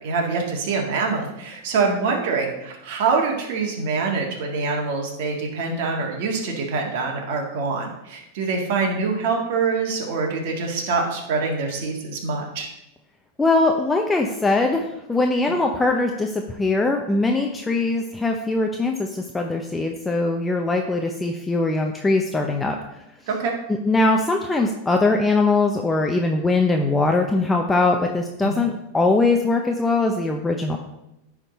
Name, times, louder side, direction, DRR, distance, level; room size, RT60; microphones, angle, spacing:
voice 1, 0.0-12.7 23.3-23.6 28.4-28.5, right 4 dB, 65° right, 1 dB, 1.7 m, -25 dB
voice 2, 13.4-22.8 23.8-30.8, left 3 dB, 10° left, 2 dB, 0.6 m, -21 dB
9.8 x 3.7 x 4.2 m, 0.87 s
hypercardioid pair, 115°, 0 cm